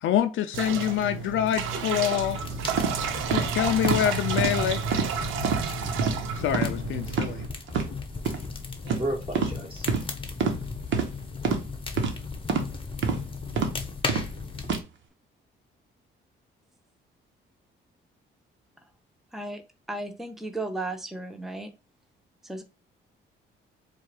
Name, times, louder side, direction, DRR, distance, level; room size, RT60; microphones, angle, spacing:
voice 1, 0.0-2.4 3.3-4.8 6.0-6.1 6.3-7.4, left 11 dB, 75° left, 0.5 m, -26 dB
sound 1, 0.5-7.5, right 7 dB, 85° right, 0.7 m, -31 dB
sound 2, 2.2-14.8, left 4 dB, 25° left, 0.9 m, -36 dB
sound 3, 2.8-2.9 3.3-3.5 3.8-4.0 4.4-4.5 4.9-5.1 5.4-5.6 6.0-6.2 6.5-6.7 7.1-7.3 7.7-7.9 8.2-8.4 8.9-9.0 9.3-9.5 9.9-10.0 10.4-10.6 10.9-11.1 11.4-11.6 12.0-12.1 12.5-12.7 13.0-13.2 13.6-13.7 14.1-14.3 14.6-14.8, right 5 dB, 70° right, 1.1 m, -26 dB
voice 2, 8.8-9.9, right 1 dB, 25° right, 2.9 m, -33 dB
voice 3, 19.9-21.7 22.4-22.6, right 2 dB, ahead, 0.7 m, -34 dB
4.4 x 2.5 x 4.8 m
cardioid pair, 90°, 20 cm